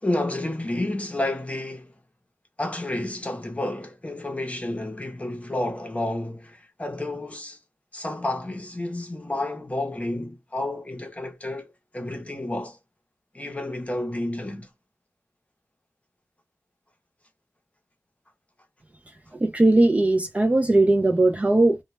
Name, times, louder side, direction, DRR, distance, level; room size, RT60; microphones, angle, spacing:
voice 1, 0.0-1.9 2.6-7.6 7.9-12.8 13.3-14.7, left 1 dB, 25° left, 0.7 m, -30 dB
voice 2, 19.3-21.8, right 2 dB, 25° right, 0.3 m, -19 dB
2.1 x 2.1 x 3.0 m
wide cardioid pair, 85°, 6 cm